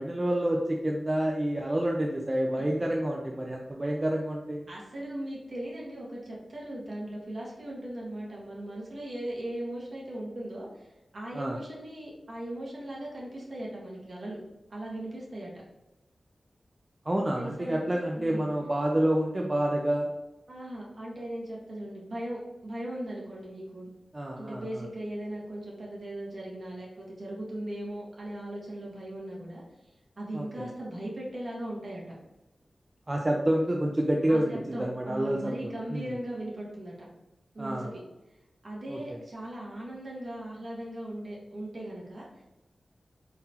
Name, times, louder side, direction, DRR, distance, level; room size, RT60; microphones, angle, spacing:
voice 1, 0.0-4.7 11.3-11.6 17.1-20.1 24.1-24.8 30.3-30.7 33.1-36.1 37.6-37.9 38.9-39.0, right 1 dB, 25° right, 0 dB, 0.4 m, -28 dB
voice 2, 4.7-14.4 14.7-15.5 17.4-18.5 20.5-23.9 24.4-29.6 30.2-32.1 34.3-36.9 37.5-38.0 38.6-42.4, right 1 dB, 55° right, -4 dB, 1.5 m, -38 dB
4.1 x 3.9 x 2.8 m, 0.98 s
wide cardioid pair, 120°, 0 cm